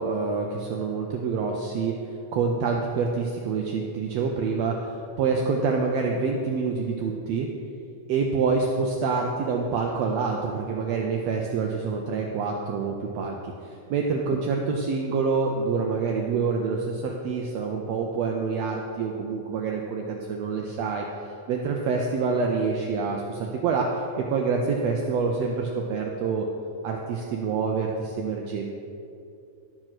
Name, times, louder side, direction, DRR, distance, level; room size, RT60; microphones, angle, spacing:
voice 1, 0.0-1.9 2.3-4.7 5.2-7.5 8.1-21.0 21.5-26.5 26.8-28.8, right 4 dB, 80° right, 1 dB, 1.5 m, -27 dB
12.0 x 4.4 x 6.1 m, 2.5 s
omnidirectional pair, 3.6 m